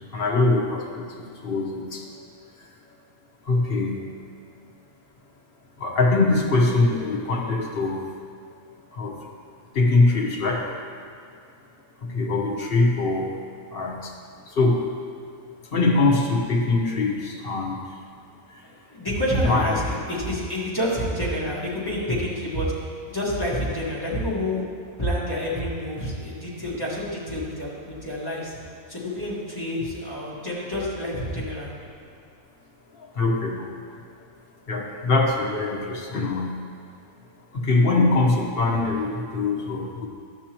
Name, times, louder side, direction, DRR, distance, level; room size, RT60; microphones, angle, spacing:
voice 1, 0.0-2.1 2.6-2.7 3.4-4.1 5.8-8.0 8.9-9.2 9.7-10.7 12.0-13.4 13.7-14.1 14.5-14.9 15.7-17.8 18.5-18.6 19.5-19.8 32.9-33.7 34.7-36.5 37.5-40.1, left 3 dB, 45° left, -1 dB, 1.2 m, -23 dB
voice 2, 18.6-22.7 23.1-24.7 25.0-28.6 28.9-31.7, equal, 15° left, -7 dB, 1.7 m, -28 dB
12.5 x 6.1 x 3.0 m, 2.3 s
omnidirectional pair, 1.4 m